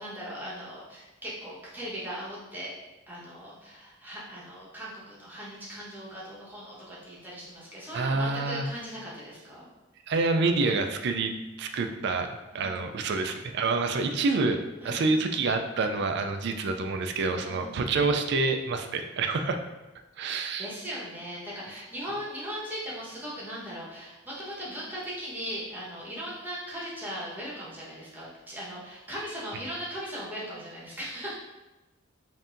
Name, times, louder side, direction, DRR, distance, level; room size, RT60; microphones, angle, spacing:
voice 1, 0.0-2.7 3.1-9.7 12.5-12.8 14.8-15.2 17.4-17.8 20.6-31.4, equal, 10° right, -8 dB, 1.2 m, -39 dB
voice 2, 7.9-8.7 10.1-11.3 11.6-14.6 14.8-19.7 20.2-20.7, right 3 dB, 60° right, 6 dB, 0.4 m, -27 dB
5.6 x 2.7 x 2.5 m, 1.0 s
head